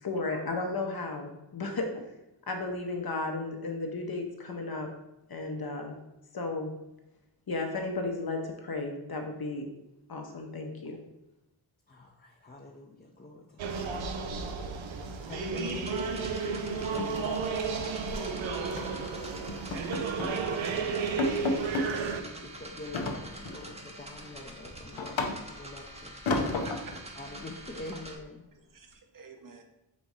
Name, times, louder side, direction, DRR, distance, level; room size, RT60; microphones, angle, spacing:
voice 1, 0.0-1.9 2.5-4.9 5.3-6.0 6.3-6.7 7.5-9.7 10.1-11.0, left 3 dB, 55° left, 3 dB, 0.9 m, -34 dB
voice 2, 11.9-14.1 15.2-16.0 16.9-17.6 21.4-26.2 27.2-28.5, left 2 dB, 20° left, -1 dB, 0.6 m, -45 dB
sound 1, 13.6-22.2, right 5 dB, 85° right, 0.6 m, -33 dB
sound 2, 14.0-14.8 15.1-15.4 15.7-15.9 16.2-16.3 16.7-18.2 18.8-19.0 19.5-20.4 20.8-20.9 21.2-21.9 22.9-23.7 24.1-25.7 26.3-27.0, left 3 dB, 85° left, 0.7 m, -33 dB
sound 3, 15.5-28.2, right 1 dB, 15° right, 0.7 m, -46 dB
voice 3, 20.0-20.9 26.6-27.2 27.5-27.6 28.7-29.6, right 4 dB, 45° right, 4 dB, 0.8 m, -50 dB
4.2 x 2.7 x 4.7 m, 0.93 s
cardioid pair, 45°, 45 cm